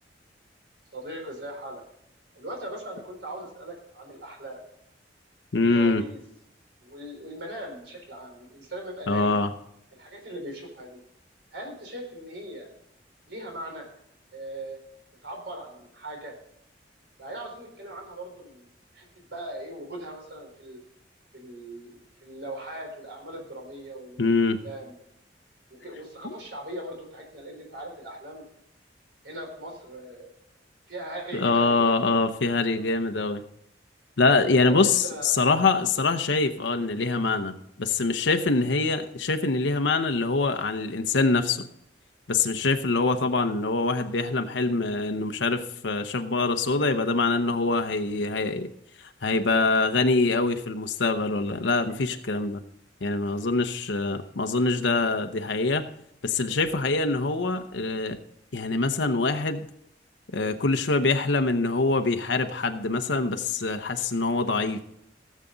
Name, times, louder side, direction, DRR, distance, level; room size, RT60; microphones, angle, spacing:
voice 1, 0.9-1.8 2.3-4.6 5.5-6.2 6.8-9.4 9.9-11.0 11.5-12.7 13.3-13.9 14.3-14.8 15.2-16.3 17.2-18.7 18.9-20.8 21.3-24.4 24.6-25.0 25.7-28.4 29.2-30.3 30.9-32.0 32.7-32.8 34.6-35.4, right 1 dB, 70° right, 2 dB, 4.1 m, -39 dB
voice 2, 5.5-6.0 9.1-9.5 24.2-24.6 26.2-26.3 31.3-33.4 34.2-41.6 42.3-48.7 49.0-52.6 53.0-55.9 56.2-58.2 58.5-59.7 60.3-64.8, left 3 dB, 85° left, 7 dB, 0.8 m, -24 dB
17.0 x 7.4 x 3.9 m, 0.78 s
head